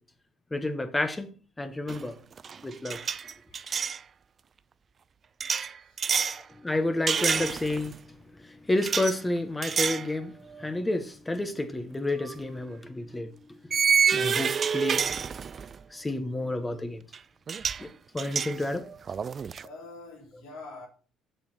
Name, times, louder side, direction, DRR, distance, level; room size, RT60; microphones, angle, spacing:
voice 1, 0.5-1.3 1.6-2.1 2.6-3.0 6.6-8.0 8.4-10.3 10.6-13.3 14.1-15.0 15.9-17.0 17.8-17.9 18.1-18.9, left 2 dB, 15° left, 1.3 m, -30 dB
sound 1, 1.9-2.1 2.4-4.0 5.4-6.4 7.1-7.9 8.8-9.1 9.6-10.1 10.5-10.7 12.2-12.3 13.7-15.8 17.1-17.2 17.5-17.8 18.2-19.6, right 6 dB, 45° right, 0.4 m, -28 dB
voice 2, 3.5-3.9 5.9-6.5 7.3-7.5 19.6-20.9, left 2 dB, 80° left, 3.3 m, -46 dB
7.0 x 5.9 x 4.9 m
hypercardioid pair, 65°, 0 cm